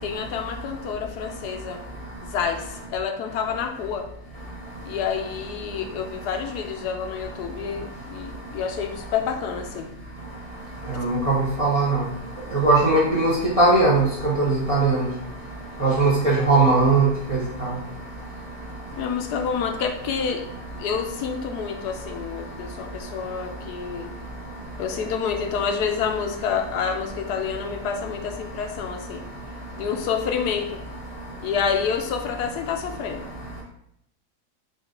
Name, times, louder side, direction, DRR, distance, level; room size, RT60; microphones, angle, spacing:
voice 1, 0.0-1.8 2.2-4.1 4.8-9.9 10.9-11.1 19.0-20.5 20.8-24.1 24.8-29.3 29.8-30.9 31.4-33.3, left 6 dB, 80° left, 5 dB, 1.1 m, -28 dB
voice 2, 10.9-12.0 12.6-13.3 13.6-14.0 14.4-15.1 15.8-17.4, right 3 dB, 35° right, -5 dB, 0.6 m, -19 dB
5.1 x 2.6 x 3.7 m, 0.74 s
omnidirectional pair, 1.7 m